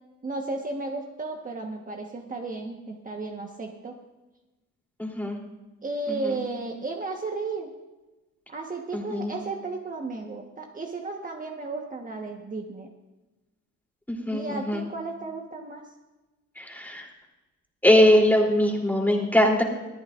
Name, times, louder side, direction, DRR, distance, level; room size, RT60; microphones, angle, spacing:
voice 1, 0.2-3.9 5.8-7.7 8.5-12.9 14.3-15.8, right 3 dB, 25° right, 1 dB, 1.4 m, -34 dB
voice 2, 5.0-5.4 6.1-6.4 8.9-9.3 14.1-14.8 16.6-17.1 17.8-19.6, left 1 dB, 5° left, 0 dB, 3.3 m, -22 dB
21.5 x 14.0 x 2.6 m, 1.1 s
cardioid pair, 90°, 30 cm